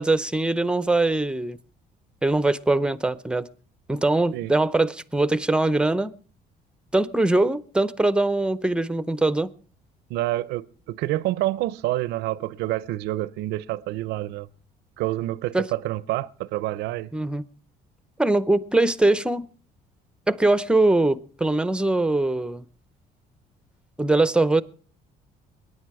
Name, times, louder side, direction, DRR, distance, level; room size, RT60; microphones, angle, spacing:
voice 1, 0.0-1.6 2.2-3.5 3.9-6.1 6.9-9.5 15.5-15.7 17.1-17.4 18.2-19.5 20.3-22.6 24.0-24.6, right 2 dB, 5° right, 0.6 m, -22 dB
voice 2, 10.1-14.5 15.0-17.1, right 16 dB, 90° right, 0.6 m, -28 dB
22.0 x 9.7 x 4.7 m
cardioid pair, 110°, 17 cm